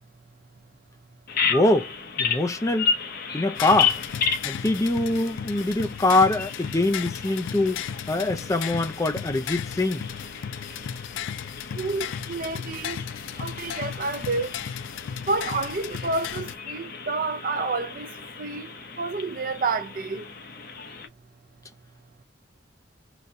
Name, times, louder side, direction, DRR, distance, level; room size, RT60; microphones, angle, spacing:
Bird vocalization bird call bird song, 1.3-21.1, left 6 dB, 55° left, 0.9 m, -33 dB
voice 1, 1.5-2.9 3.3-4.0 4.4-10.0, left 2 dB, 15° left, 0.5 m, -24 dB
sound 1, 3.6-16.5, left 8 dB, 90° left, 0.3 m, -35 dB
voice 2, 11.8-13.0 13.4-14.5 15.3-18.1 18.4-18.7 19.0-20.3, right 3 dB, 45° right, 0.5 m, -29 dB
4.0 x 2.2 x 2.6 m
head